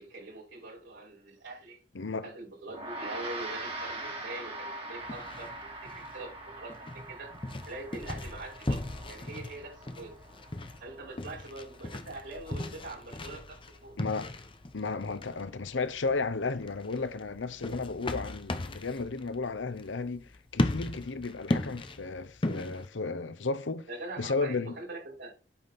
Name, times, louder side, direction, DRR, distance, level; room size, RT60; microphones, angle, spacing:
voice 1, 0.0-1.8 2.2-7.3 7.6-10.1 10.8-13.9 23.9-25.3, right 2 dB, 80° right, 4.9 m, -43 dB
voice 2, 1.9-2.3 14.0-14.3 14.7-23.9 24.2-24.8, left 4 dB, 80° left, 0.8 m, -34 dB
Gong, 2.7-12.3, right 2 dB, 30° right, 2.6 m, -43 dB
sound 1, 5.0-22.9, left 1 dB, 30° left, 0.8 m, -37 dB
8.5 x 5.2 x 4.2 m
head